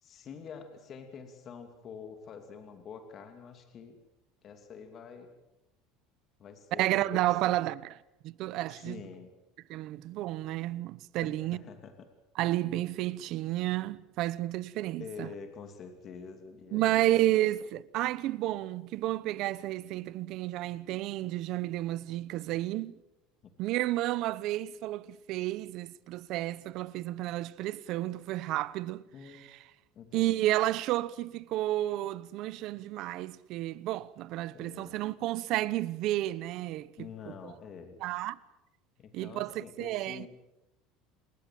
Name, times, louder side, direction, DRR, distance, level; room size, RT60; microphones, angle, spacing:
voice 1, 0.0-4.0 4.4-5.3 6.4-7.6 8.7-9.3 11.2-11.9 15.0-17.5 29.1-29.5 29.9-30.5 34.5-35.0 37.0-38.0 39.0-40.3, left 6 dB, 30° left, 2.8 m, -46 dB
voice 2, 6.7-7.9 8.2-9.0 9.7-11.6 12.4-15.3 16.7-23.0 23.6-29.0 29.5-29.6 30.1-36.9 37.3-37.5 38.0-38.4 39.1-40.3, right 15 dB, 45° right, 0.9 m, -31 dB
28.0 x 20.5 x 7.7 m
cardioid pair, 165°, 0 cm